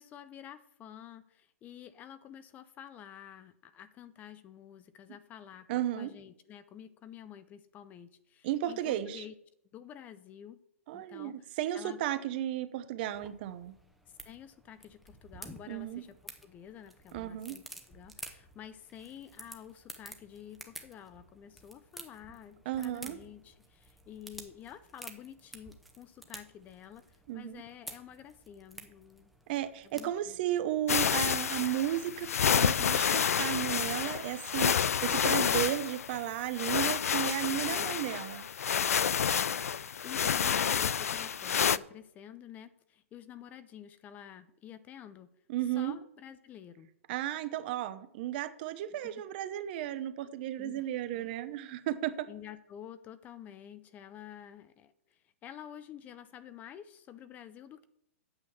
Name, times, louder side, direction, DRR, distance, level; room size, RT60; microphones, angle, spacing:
voice 1, 0.0-9.3 9.7-10.6 10.9-12.0 14.2-29.3 29.9-30.4 37.7-38.2 39.1-45.3 45.7-46.9 49.0-49.2 50.5-50.9 51.1-51.3 52.3-57.8, left 10 dB, 20° left, 13 dB, 0.5 m, -50 dB
voice 2, 5.7-6.1 8.4-9.2 10.9-13.7 15.7-16.0 17.1-17.6 22.7-23.2 27.3-27.6 29.5-34.8 35.0-38.5 45.5-46.0 47.1-52.3, right 12 dB, 45° right, 13 dB, 0.8 m, -34 dB
sound 1, 13.1-32.5, right 1 dB, ahead, 1.0 m, -52 dB
sound 2, 30.9-41.8, left 8 dB, 90° left, 0.4 m, -29 dB
8.8 x 6.3 x 7.2 m, 0.74 s
hypercardioid pair, 145°, 8 cm